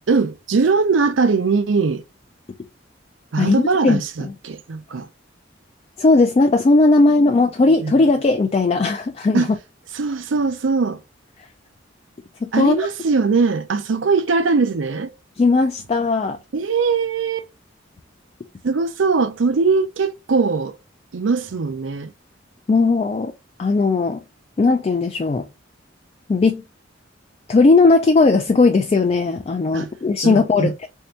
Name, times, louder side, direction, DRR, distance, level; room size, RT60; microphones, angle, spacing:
voice 1, 0.1-2.0 3.3-5.1 7.8-8.0 9.3-9.5 9.9-11.0 12.5-15.1 16.5-17.5 18.6-20.7 21.1-22.1 29.7-29.9 30.2-30.7, right 4 dB, 80° right, 0.5 m, -20 dB
voice 2, 3.4-4.3 6.0-9.5 12.4-12.8 15.4-16.4 22.7-23.3 23.6-24.2 24.6-25.5 26.3-26.6 27.5-30.9, left 3 dB, 35° left, 0.3 m, -17 dB
3.4 x 2.7 x 3.1 m
head